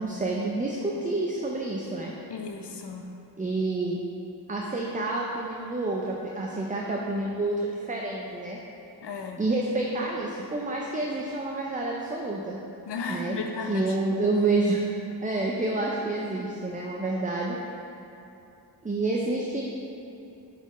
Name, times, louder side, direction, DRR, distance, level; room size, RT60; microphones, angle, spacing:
voice 1, 0.0-2.1 3.4-4.0 4.5-8.6 9.4-12.6 13.1-13.4 13.7-14.8 15.2-17.6 18.8-19.6, right 2 dB, 20° right, -2 dB, 0.5 m, -28 dB
voice 2, 2.3-3.1 9.0-9.4 12.9-14.0, left 4 dB, 70° left, 3 dB, 0.7 m, -34 dB
7.5 x 4.3 x 3.1 m, 2.8 s
wide cardioid pair, 75°, 43 cm